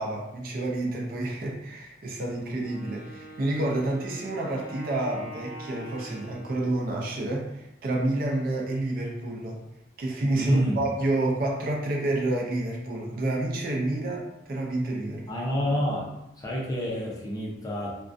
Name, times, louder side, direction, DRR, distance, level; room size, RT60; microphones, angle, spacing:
voice 1, 0.0-9.6 10.0-15.3, right 2 dB, 50° right, -1 dB, 0.4 m, -29 dB
Wind instrument woodwind instrument, 2.6-7.4, right 2 dB, 10° right, 0.8 m, -44 dB
voice 2, 10.3-10.8 15.3-16.1 16.4-18.0, equal, 20° left, -3 dB, 0.4 m, -28 dB
2.4 x 2.1 x 2.4 m, 0.87 s
head